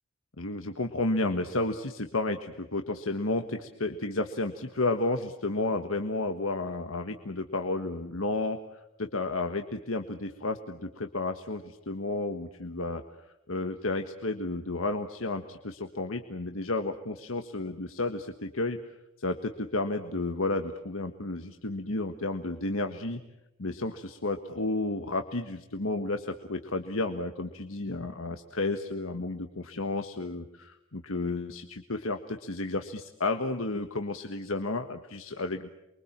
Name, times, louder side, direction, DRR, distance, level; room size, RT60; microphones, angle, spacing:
voice 1, 0.4-13.0 13.5-18.8 19.2-23.2 23.6-35.7, left 2 dB, 70° left, 6 dB, 1.5 m, -32 dB
29.0 x 23.5 x 7.5 m, 0.93 s
head